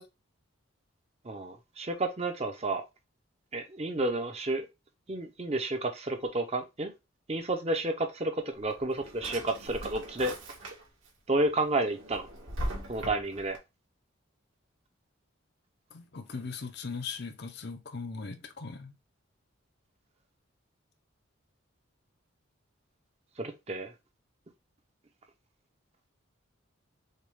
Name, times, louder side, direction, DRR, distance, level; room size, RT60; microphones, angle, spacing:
voice 1, 1.2-2.8 3.5-4.7 5.1-6.9 7.3-10.3 11.3-12.3 12.9-13.6 23.4-23.9, right 2 dB, 30° right, 0.7 m, -31 dB
Drawer open or close, 8.5-11.1 11.5-13.6, right 1 dB, 70° right, 1.5 m, -40 dB
voice 2, 15.9-19.0, left 4 dB, 50° left, 0.6 m, -39 dB
6.5 x 2.4 x 3.3 m
head